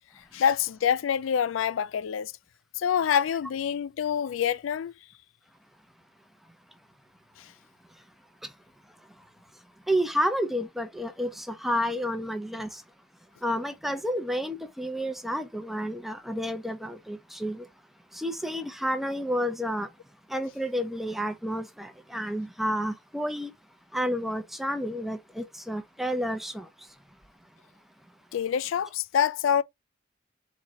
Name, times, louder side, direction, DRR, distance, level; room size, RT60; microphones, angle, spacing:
voice 1, 0.3-2.3 2.8-4.9 7.4-7.5 28.3-29.6, left 8 dB, 90° left, 0.4 m, -26 dB
voice 2, 9.9-12.8 13.4-17.6 18.1-19.9 20.3-23.5 23.9-26.7, equal, ahead, 0.6 m, -30 dB
4.2 x 3.1 x 3.6 m
head